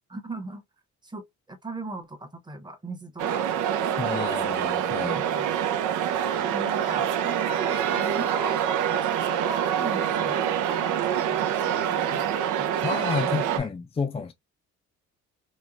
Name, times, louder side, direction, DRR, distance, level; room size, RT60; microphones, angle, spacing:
voice 1, 0.1-0.6 1.0-3.6 5.3-5.5 6.4-11.0 11.3-12.7 13.5-13.7, right 2 dB, 15° right, 0.8 m, -38 dB
sound 1, 3.2-13.6, right 9 dB, 85° right, 0.5 m, -26 dB
voice 2, 4.0-5.3 12.8-14.3, left 5 dB, 20° left, 0.4 m, -30 dB
3.0 x 2.1 x 2.4 m
cardioid pair, 90°, 30 cm